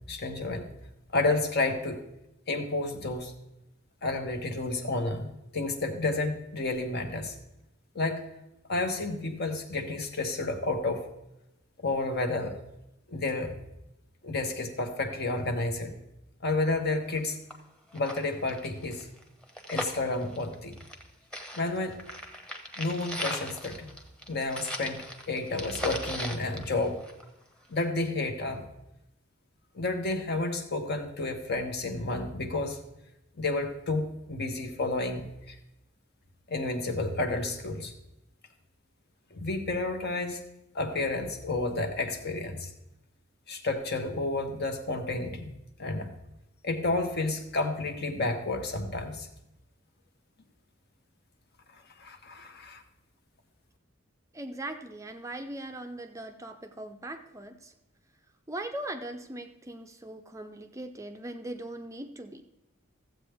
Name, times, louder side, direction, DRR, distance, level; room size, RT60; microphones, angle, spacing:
voice 1, 0.1-0.6 1.1-2.0 2.5-3.3 4.0-7.4 7.9-8.2 8.7-11.0 11.8-12.6 13.1-13.5 14.2-15.9 16.4-17.4 17.9-19.1 19.7-20.7 21.6-22.0 22.8-23.9 24.3-27.0 27.7-28.6 29.7-32.8 33.4-35.6 36.5-37.9 39.3-40.4 40.7-42.7 43.5-45.5 45.8-46.1 46.6-49.3 52.0-52.8, left 2 dB, 55° left, 5 dB, 1.1 m, -31 dB
sound 1, 17.1-17.2 17.5-17.6 17.9-21.1 21.3-27.4 27.8-27.9, equal, 5° left, 1.0 m, -38 dB
voice 2, 54.3-57.7 58.5-62.4, right 1 dB, 15° right, 7 dB, 0.5 m, -40 dB
14.5 x 7.7 x 3.5 m, 0.88 s
head